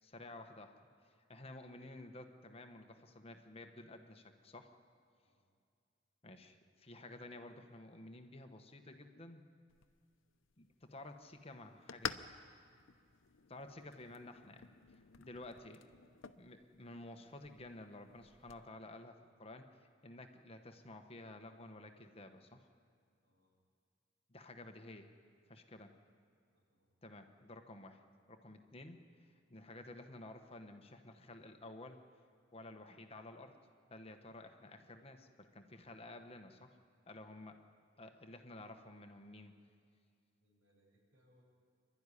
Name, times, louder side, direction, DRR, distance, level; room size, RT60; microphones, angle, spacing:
voice 1, 0.0-0.8 1.0-4.7 6.2-9.4 10.6-12.2 13.5-15.8 16.4-22.7 24.3-25.1 25.5-25.9 27.0-28.0 28.3-32.0 32.5-33.6 33.9-36.8 37.1-37.6 38.0-39.5, left 2 dB, 30° left, 6 dB, 1.2 m, -53 dB
sound 1, 9.7-18.7, left 7 dB, 90° left, 0.8 m, -51 dB
voice 2, 25.8-26.1 26.5-26.9 28.6-28.8 40.4-41.4, equal, 80° right, -2 dB, 7.3 m, -74 dB
26.5 x 12.5 x 9.9 m, 2.3 s
head